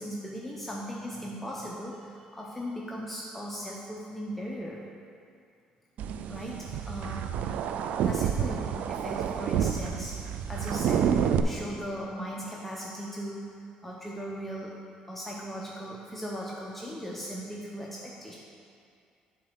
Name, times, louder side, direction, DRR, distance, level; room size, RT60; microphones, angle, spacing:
voice 1, 0.0-4.8 6.3-7.5 8.0-10.2 10.5-14.8 15.1-18.4, equal, 5° left, -3 dB, 0.9 m, -38 dB
sound 1, 6.0-11.4, right 8 dB, 70° right, 0.4 m, -29 dB
8.4 x 4.1 x 5.8 m, 2.4 s
supercardioid pair, 80°, 3 cm